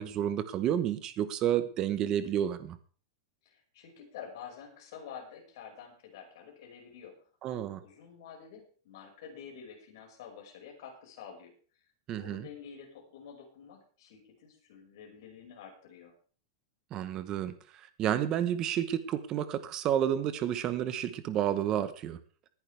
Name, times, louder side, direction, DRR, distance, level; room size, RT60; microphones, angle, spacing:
voice 1, 0.0-2.8 7.4-7.8 12.1-12.5 16.9-22.2, right 10 dB, 20° right, 12 dB, 1.0 m, -30 dB
voice 2, 3.4-11.5 12.1-16.1, left 7 dB, 50° left, 1 dB, 5.6 m, -49 dB
20.0 x 10.5 x 3.4 m, 0.41 s
supercardioid pair, 180°, 3 cm